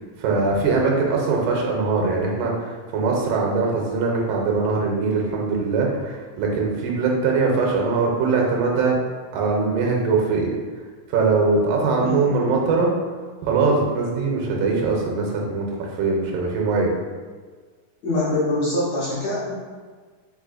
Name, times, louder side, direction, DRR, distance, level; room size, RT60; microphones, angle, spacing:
voice 1, 0.2-9.0 9.3-10.6 11.1-12.9 13.4-15.7 15.9-16.9, right 4 dB, 80° right, -1 dB, 2.2 m, -21 dB
voice 2, 12.0-12.4 18.0-19.5, left 2 dB, 70° left, -10 dB, 1.7 m, -24 dB
5.4 x 3.4 x 2.4 m, 1.5 s
omnidirectional pair, 4.0 m